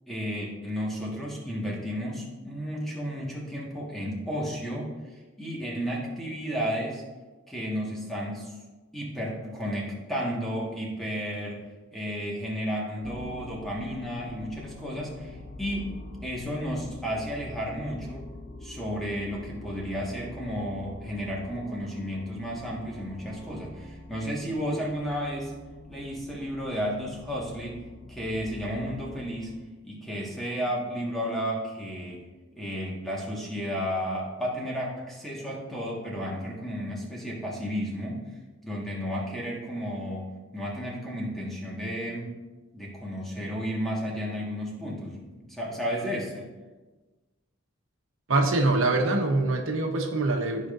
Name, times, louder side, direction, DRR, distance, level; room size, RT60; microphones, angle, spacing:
voice 1, 0.1-4.9 5.4-7.0 7.5-8.5 8.9-11.6 11.9-18.2 18.6-25.5 25.9-27.8 28.1-29.5 29.8-32.2 32.5-38.2 38.6-40.3 40.5-42.3 42.7-46.5, equal, ahead, -4 dB, 1.5 m, -33 dB
sound 1, 13.0-29.6, left 2 dB, 40° left, 0.8 m, -45 dB
voice 2, 48.3-50.7, right 2 dB, 85° right, 2 dB, 1.0 m, -24 dB
13.0 x 5.1 x 2.5 m, 1.2 s
head